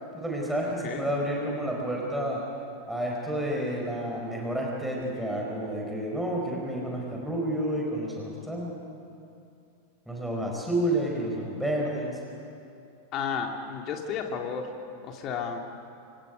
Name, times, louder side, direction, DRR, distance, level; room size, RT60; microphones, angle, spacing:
voice 1, 0.1-2.4 2.9-8.8 10.1-12.2, right 1 dB, 5° right, -2 dB, 5.0 m, -30 dB
voice 2, 13.1-14.7 15.0-15.6, left 6 dB, 35° left, 3 dB, 2.9 m, -32 dB
29.0 x 26.0 x 5.3 m, 2.6 s
figure-of-eight pair, 90°, 0 cm